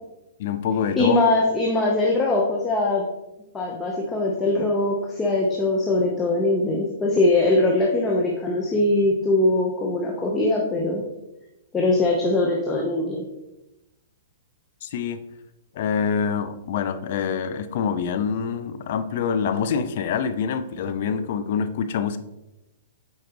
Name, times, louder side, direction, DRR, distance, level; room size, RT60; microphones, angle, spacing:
voice 1, 0.4-1.2 14.8-15.2 15.7-22.2, left 7 dB, 55° left, 11 dB, 0.6 m, -25 dB
voice 2, 1.0-3.0 3.5-11.0 11.7-13.3, left 2 dB, 15° left, -2 dB, 1.0 m, -21 dB
8.2 x 5.0 x 3.0 m, 0.95 s
hypercardioid pair, 135°, 0 cm